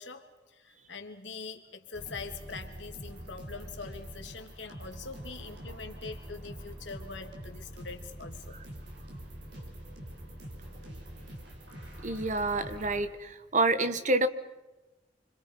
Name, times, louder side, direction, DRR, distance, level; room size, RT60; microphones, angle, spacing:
voice 1, 0.0-8.6, left 4 dB, 85° left, 5 dB, 2.7 m, -43 dB
sound 1, 1.9-13.1, equal, 65° right, 5.3 m, -45 dB
voice 2, 12.0-14.3, right 2 dB, 45° right, 11 dB, 1.4 m, -28 dB
30.0 x 26.0 x 5.6 m, 1.1 s
head